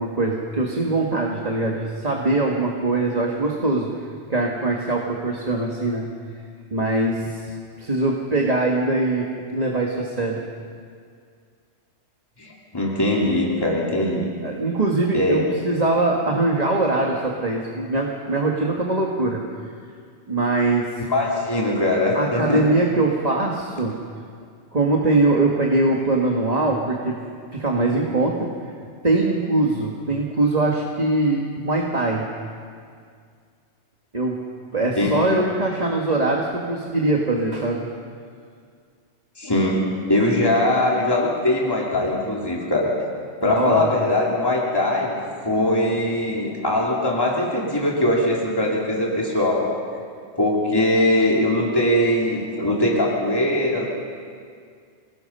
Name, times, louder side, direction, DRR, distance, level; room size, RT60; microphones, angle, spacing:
voice 1, 0.0-3.9 4.3-6.1 6.7-10.4 14.4-19.7 20.3-20.9 22.1-24.0 24.7-27.2 27.5-28.5 29.0-32.3 34.1-34.4 34.7-37.8 41.9-42.0 43.4-43.9, right 2 dB, 35° right, -1 dB, 1.7 m, -22 dB
voice 2, 12.4-14.3 15.1-15.6 21.1-22.6 35.0-35.2 39.4-39.8 40.1-42.9 43.4-49.7 50.4-53.9, left 1 dB, 20° left, -3 dB, 2.8 m, -21 dB
27.0 x 19.0 x 5.5 m, 2.2 s
omnidirectional pair, 1.2 m